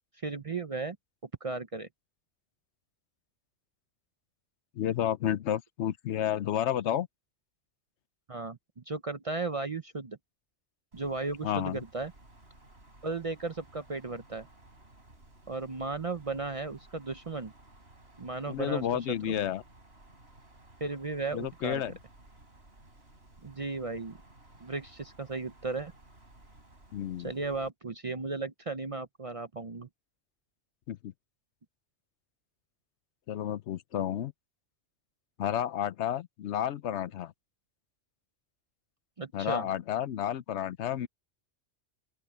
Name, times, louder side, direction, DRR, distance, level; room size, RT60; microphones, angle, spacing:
voice 1, 0.2-1.0 1.4-1.9 8.3-10.2 10.9-12.1 13.0-14.5 15.5-17.5 18.2-19.4 20.8-21.8 23.4-24.2 24.6-25.9 27.2-29.9 39.2-39.7, right 3 dB, 35° right, 0.6 m, -35 dB
voice 2, 4.8-7.1 11.4-11.8 18.5-19.6 21.3-22.0 26.9-27.3 30.9-31.1 33.3-34.3 35.4-37.3 39.3-41.1, left 10 dB, 70° left, 0.9 m, -31 dB
Wind, 10.9-27.7, right 2 dB, 60° right, 5.4 m, -57 dB
open air
omnidirectional pair, 1.2 m